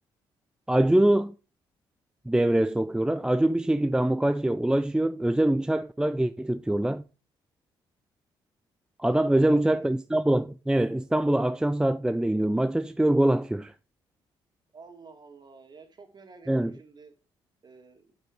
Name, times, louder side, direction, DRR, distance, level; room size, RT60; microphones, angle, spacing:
voice 1, 0.7-1.3 2.3-7.0 9.0-13.7 16.5-16.7, right 1 dB, 5° right, 0.4 m, -24 dB
voice 2, 9.1-10.0 14.7-17.1 17.6-18.1, right 4 dB, 45° right, 2.1 m, -50 dB
7.8 x 6.8 x 3.5 m
supercardioid pair, 55°, 11 cm